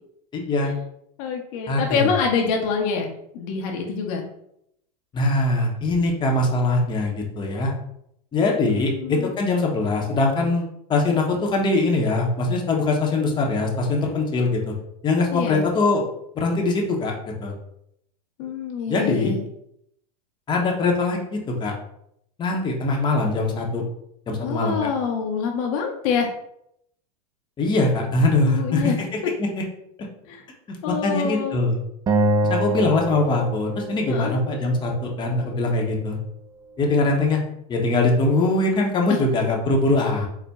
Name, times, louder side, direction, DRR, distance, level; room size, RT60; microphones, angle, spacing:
voice 1, 0.3-0.7 1.7-2.1 5.1-7.7 8.3-10.6 10.9-14.7 15.0-16.0 16.4-17.1 17.4-17.5 18.9-19.3 20.5-21.7 22.4-23.8 24.3-24.9 27.6-28.9 29.4-29.6 30.7-31.8 32.5-36.2 36.8-37.4 37.7-40.3, left 2 dB, 20° left, 0 dB, 0.8 m, -22 dB
voice 2, 1.2-3.1 3.3-4.2 8.7-9.3 15.3-15.6 18.4-19.4 24.4-26.3 28.4-29.0 30.3-30.4 30.8-31.6 34.1-34.4 39.1-39.2, left 6 dB, 55° left, 2 dB, 0.7 m, -26 dB
Acoustic guitar, 32.1-35.3, right 1 dB, 20° right, 0.4 m, -25 dB
4.0 x 2.1 x 3.5 m, 0.75 s
hypercardioid pair, 110°, 21 cm